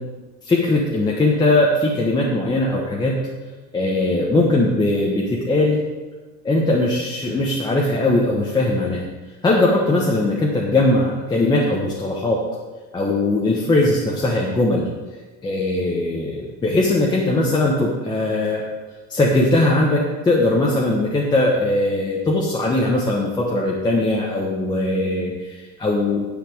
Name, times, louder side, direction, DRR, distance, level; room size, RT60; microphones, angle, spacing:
voice 1, 0.4-3.1 3.7-5.8 6.4-9.1 9.4-12.4 12.9-14.9 15.4-18.6 19.1-26.3, left 2 dB, 15° left, -3 dB, 1.2 m, -20 dB
10.5 x 5.7 x 7.9 m, 1.3 s
supercardioid pair, 150°, 31 cm